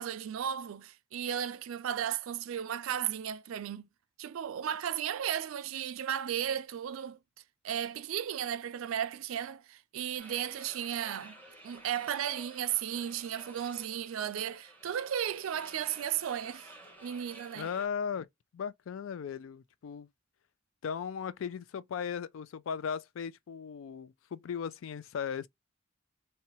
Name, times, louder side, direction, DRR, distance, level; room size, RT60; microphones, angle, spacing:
voice 1, 0.0-3.9 4.2-7.2 7.6-11.4 11.6-16.7 17.0-17.7, right 9 dB, 80° right, 0.4 m, -35 dB
sound 1, 10.2-17.9, right 1 dB, 10° left, 0.9 m, -52 dB
voice 2, 17.6-18.3 18.5-20.1 20.8-25.5, left 7 dB, 70° left, 0.3 m, -37 dB
2.7 x 2.2 x 2.8 m
head